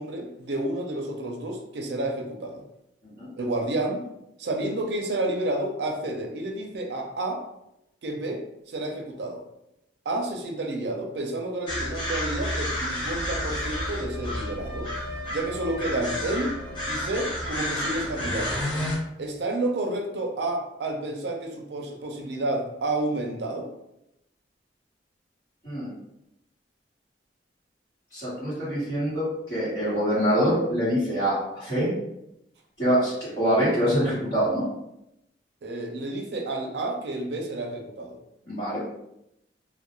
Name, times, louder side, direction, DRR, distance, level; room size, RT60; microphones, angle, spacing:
voice 1, 0.0-2.6 3.4-4.0 4.4-7.4 8.0-9.4 10.1-14.9 15.3-16.5 16.9-18.7 19.2-23.7 35.6-38.2, right 2 dB, 65° right, 2 dB, 0.4 m, -30 dB
sound 1, 11.7-19.0, left 1 dB, 25° left, 0.5 m, -30 dB
voice 2, 28.1-31.9 32.8-34.6 38.5-38.8, equal, 45° left, -14 dB, 1.1 m, -25 dB
2.3 x 2.1 x 2.9 m, 0.84 s
head